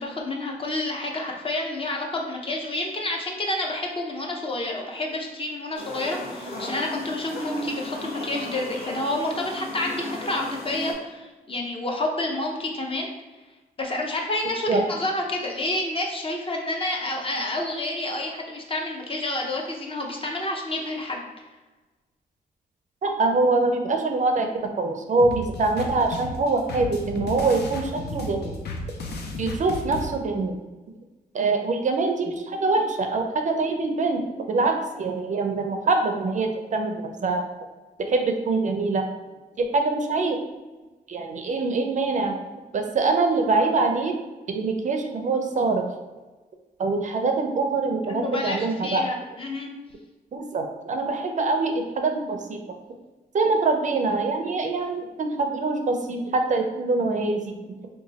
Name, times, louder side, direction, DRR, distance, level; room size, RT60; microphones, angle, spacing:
voice 1, 0.0-13.1 13.8-21.2 48.1-49.7, left 2 dB, 35° left, 0 dB, 0.6 m, -29 dB
sound 1, 5.7-10.9, left 1 dB, 65° left, 1.2 m, -35 dB
voice 2, 23.0-28.6 29.4-30.6 31.3-34.2 34.5-37.4 38.0-39.1 39.6-40.4 41.1-42.4 42.7-44.2 44.5-45.9 46.8-49.0 50.3-52.6 53.3-57.5, right 3 dB, 50° right, 4 dB, 0.4 m, -24 dB
sound 2, 25.2-30.1, left 2 dB, 90° left, 0.5 m, -34 dB
3.0 x 2.2 x 3.9 m, 1.2 s
cardioid pair, 105°, 17 cm